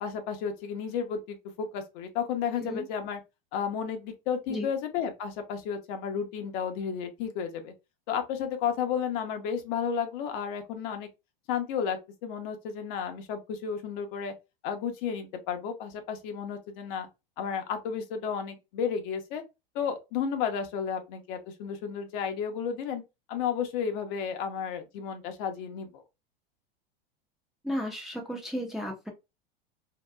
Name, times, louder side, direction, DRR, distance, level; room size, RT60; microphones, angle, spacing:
voice 1, 0.0-3.2 3.5-7.7 8.1-11.1 11.5-14.3 14.6-17.1 17.4-19.4 19.7-23.0 23.3-26.0, left 7 dB, 55° left, 0.8 m, -32 dB
voice 2, 27.6-29.1, equal, ahead, 0.5 m, -34 dB
2.8 x 2.2 x 2.2 m
hypercardioid pair, 100°, 29 cm